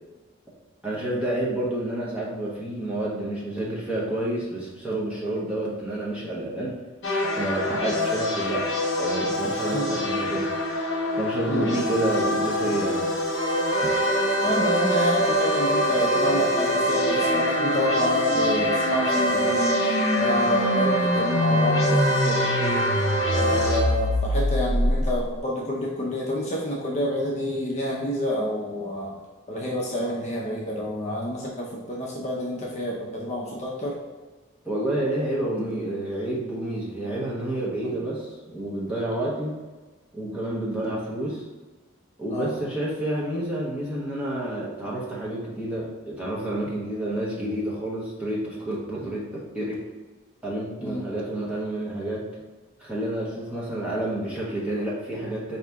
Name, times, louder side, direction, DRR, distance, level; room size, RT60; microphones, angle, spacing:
voice 1, 0.8-6.8 7.4-8.6 9.0-10.5 11.2-13.1 34.6-39.5 40.1-41.4 42.2-49.2 49.5-49.8 50.4-52.2 52.8-55.6, right 1 dB, 5° right, -6 dB, 1.0 m, -29 dB
sound 1, 7.0-23.8, left 1 dB, 60° left, 0.9 m, -26 dB
voice 2, 11.5-11.9 14.0-14.1 14.4-19.7 20.2-22.9 23.3-29.1 29.5-34.0 42.3-42.5 49.0-49.1 50.8-51.1, equal, 35° left, -4 dB, 0.6 m, -28 dB
Organ, 13.3-24.1, right 3 dB, 70° right, 1.2 m, -27 dB
sound 2, 15.3-25.4, left 1 dB, 75° left, 0.6 m, -27 dB
4.8 x 2.8 x 3.5 m, 1.3 s
head